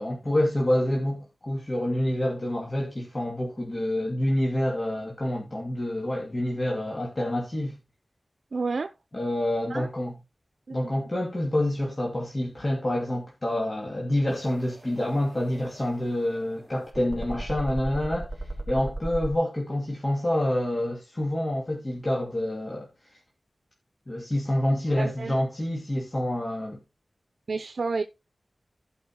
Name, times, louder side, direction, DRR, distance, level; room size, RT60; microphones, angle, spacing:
voice 1, 0.0-7.8 9.1-10.1 10.7-18.3 18.7-22.9 24.1-26.8, left 1 dB, 35° left, 2.3 m, -27 dB
voice 2, 8.5-8.9 9.7-9.9 10.7-10.9 25.0-25.4 27.5-28.0, right 4 dB, 85° right, 0.6 m, -30 dB
sound 1, 14.3-19.3, right 1 dB, 10° right, 3.0 m, -37 dB
15.5 x 5.5 x 2.9 m
wide cardioid pair, 70°, 0 cm